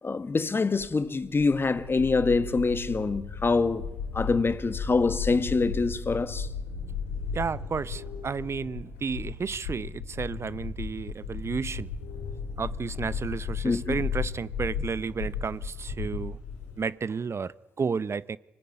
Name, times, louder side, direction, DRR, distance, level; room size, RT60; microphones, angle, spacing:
voice 1, 0.0-6.5 13.6-14.0, left 4 dB, 35° left, 1.8 m, -25 dB
sound 1, 0.8-16.8, left 5 dB, 90° left, 4.1 m, -35 dB
voice 2, 7.3-11.9 12.6-16.4 16.8-18.4, right 5 dB, 45° right, 0.7 m, -32 dB
25.0 x 18.5 x 9.7 m
hypercardioid pair, 40°, 6 cm